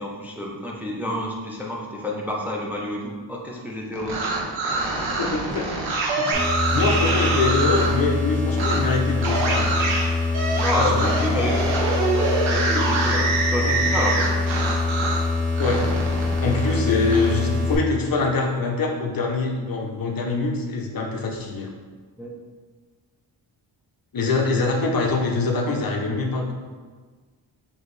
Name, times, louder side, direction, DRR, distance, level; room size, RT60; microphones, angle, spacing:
voice 1, 0.0-4.2 10.5-11.8 12.5-14.4 22.2-22.4, left 1 dB, 5° right, -2 dB, 0.5 m, -28 dB
sound 1, 3.9-8.0 8.5-8.8 9.2-15.3 15.6-17.3, right 3 dB, 85° right, 0.9 m, -25 dB
voice 2, 5.2-5.7 6.2-6.4 6.7-9.9 10.8-11.1 15.6-15.8 16.1-21.7 24.1-26.5, left 3 dB, 50° left, 1 dB, 0.6 m, -24 dB
sound 2, 6.3-17.8, left 3 dB, 15° left, 1.4 m, -24 dB
4.7 x 2.8 x 3.1 m, 1.5 s
cardioid pair, 90°, 46 cm